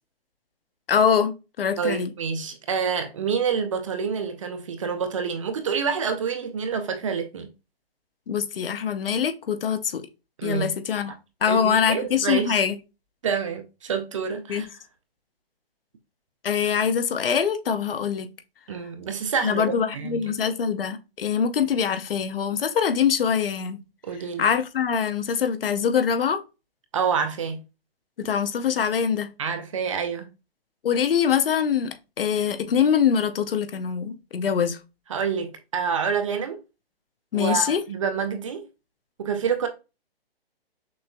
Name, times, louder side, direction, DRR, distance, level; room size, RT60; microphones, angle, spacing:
voice 1, 0.9-2.1 8.3-10.1 10.4-11.1 11.4-12.8 14.5-14.6 16.4-18.3 19.4-23.8 24.4-26.4 28.2-29.3 30.8-34.8 37.3-37.8, left 7 dB, 65° left, 0.7 m, -24 dB
voice 2, 1.8-7.5 10.4-10.7 11.5-12.6 13.2-14.7 18.7-20.2 24.1-24.5 26.9-27.6 29.4-30.3 35.1-36.6 37.3-38.6 39.2-39.7, right 6 dB, 30° right, 0.5 m, -27 dB
6.3 x 2.5 x 2.3 m
hypercardioid pair, 155°, 31 cm